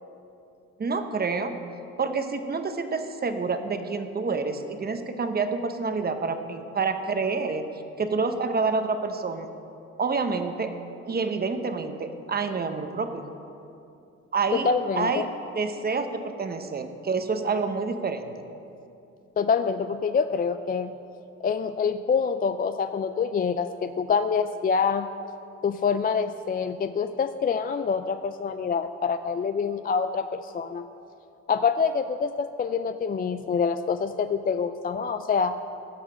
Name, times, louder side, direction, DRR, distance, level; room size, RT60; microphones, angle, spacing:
voice 1, 0.8-1.6 2.0-7.7 8.0-9.5 10.0-10.7 11.1-13.2 14.3-15.3 15.5-18.3, right 4 dB, 30° right, 8 dB, 1.0 m, -28 dB
voice 2, 14.5-15.3 19.4-21.0 21.4-25.1 25.6-30.8 31.5-35.6, left 6 dB, 30° left, 9 dB, 0.4 m, -26 dB
15.5 x 6.5 x 6.3 m, 2.7 s
cardioid pair, 90°, 30 cm